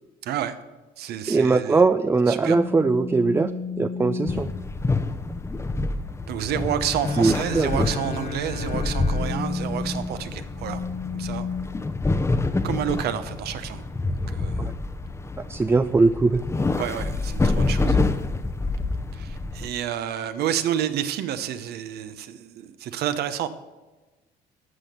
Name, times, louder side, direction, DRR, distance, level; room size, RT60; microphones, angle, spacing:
voice 1, 0.2-0.6 1.0-1.8 2.3-2.6 6.3-10.8 11.1-11.5 12.6-13.8 14.3-14.7 16.8-18.0 19.1-23.5, right 10 dB, 70° right, 11 dB, 1.0 m, -29 dB
voice 2, 1.3-3.5 3.8-4.5 7.2-7.9 15.5-16.4, right 3 dB, 15° right, 10 dB, 0.4 m, -20 dB
sound 1, 2.4-4.5 7.6-7.9 8.8-11.6, left 4 dB, 70° left, 1.8 m, -33 dB
sound 2, 4.3-19.7, left 3 dB, 15° left, 0.7 m, -27 dB
Bowed string instrument, 6.7-11.3, left 4 dB, 50° left, 0.9 m, -36 dB
12.5 x 6.1 x 6.8 m, 1.2 s
cardioid pair, 110°, 17 cm